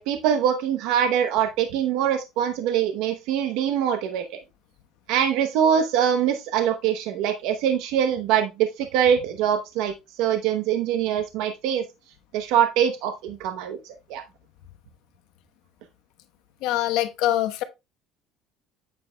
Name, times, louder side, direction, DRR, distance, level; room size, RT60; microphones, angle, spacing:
voice 1, 0.0-4.4 5.1-11.8 12.3-14.2, right 9 dB, 75° right, 0.8 m, -23 dB
voice 2, 16.6-17.6, left 13 dB, 75° left, 1.0 m, -24 dB
9.0 x 7.7 x 2.2 m
cardioid pair, 130°, 0 cm